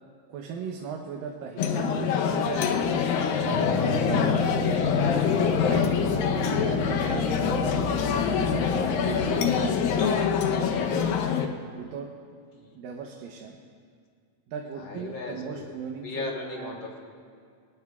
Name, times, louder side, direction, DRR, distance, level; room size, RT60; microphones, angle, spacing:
voice 1, 0.3-2.9 3.5-5.1 5.6-6.0 6.6-7.8 8.1-11.1 11.8-12.1 12.8-13.6 14.5-16.8, right 6 dB, 80° right, 1 dB, 2.6 m, -38 dB
sound 1, 1.6-11.5, left 6 dB, 85° left, 2.6 m, -25 dB
sound 2, 3.3-10.7, left 4 dB, 65° left, 3.4 m, -30 dB
voice 2, 14.8-15.7 16.0-17.0, left 3 dB, 50° left, 0 dB, 1.5 m, -37 dB
23.5 x 18.5 x 2.4 m, 2.2 s
omnidirectional pair, 4.0 m